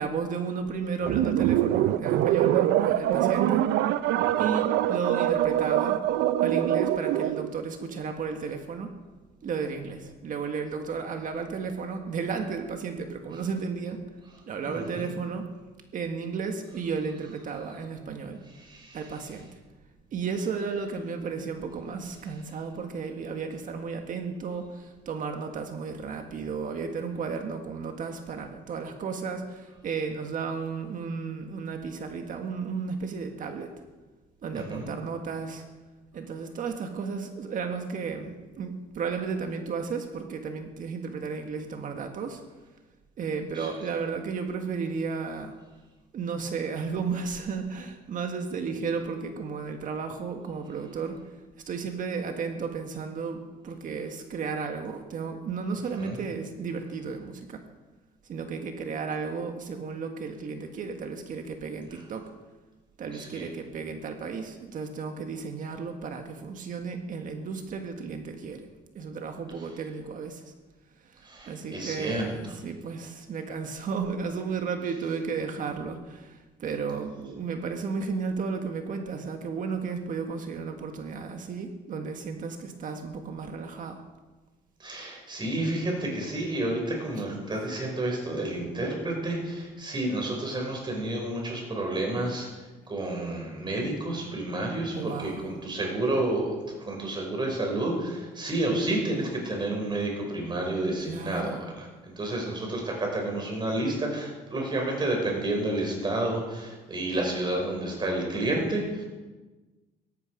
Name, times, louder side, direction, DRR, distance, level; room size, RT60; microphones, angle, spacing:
voice 1, 0.0-3.7 4.4-6.1 6.4-8.9 9.4-14.0 14.5-15.5 15.9-18.4 18.9-19.6 20.1-33.7 34.4-35.7 36.1-42.4 43.2-45.6 46.1-51.2 51.7-57.6 58.2-62.2 63.0-68.7 68.9-70.5 71.0-84.0 94.9-95.5 101.0-101.6, right 5 dB, 50° right, 5 dB, 1.7 m, -33 dB
sound 1, 1.0-7.5, right 12 dB, 85° right, 0.6 m, -24 dB
voice 2, 4.2-4.5 14.6-15.0 18.6-19.0 34.5-34.9 43.5-43.7 56.0-56.2 63.1-63.5 71.2-72.5 84.8-109.0, right 1 dB, 25° right, 0 dB, 6.1 m, -30 dB
17.5 x 14.0 x 5.1 m, 1.2 s
cardioid pair, 110°, 17 cm